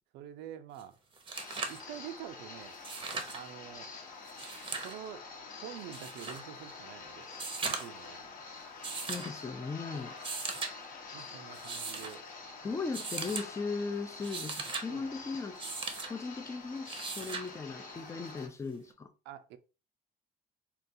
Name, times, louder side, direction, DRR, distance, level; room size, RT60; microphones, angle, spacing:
voice 1, 0.1-1.0 1.7-2.8 3.3-3.9 4.8-5.2 5.6-7.3 7.6-8.4 9.9-10.0 11.1-12.2 14.9-15.1 19.3-19.6, right 10 dB, 90° right, 0.4 m, -46 dB
sound 1, 0.8-0.9 1.1-1.8 2.7-3.4 4.3-5.0 5.9-6.4 7.3-8.0 8.8-9.3 10.1-10.7 11.5-12.1 12.9-13.5 14.1-14.9 15.6-16.1 16.9-17.5 18.9-19.0, right 4 dB, 30° right, 0.6 m, -38 dB
sound 2, 1.3-18.5, left 4 dB, 55° left, 0.8 m, -47 dB
voice 2, 9.1-10.2 12.6-15.6 16.1-19.1, left 4 dB, 15° left, 0.4 m, -38 dB
3.8 x 2.3 x 2.6 m
cardioid pair, 110°, 17 cm